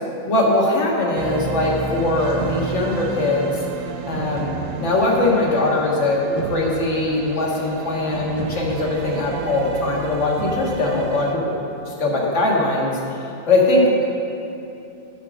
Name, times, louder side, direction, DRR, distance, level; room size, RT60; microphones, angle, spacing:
voice 1, 0.2-3.6 4.1-4.5 4.8-11.5 11.8-13.0 13.5-14.1, left 2 dB, 40° left, -3 dB, 1.7 m, -21 dB
sound 1, 1.1-11.3, right 5 dB, 75° right, 0.7 m, -31 dB
11.0 x 5.0 x 7.2 m, 2.8 s
omnidirectional pair, 2.0 m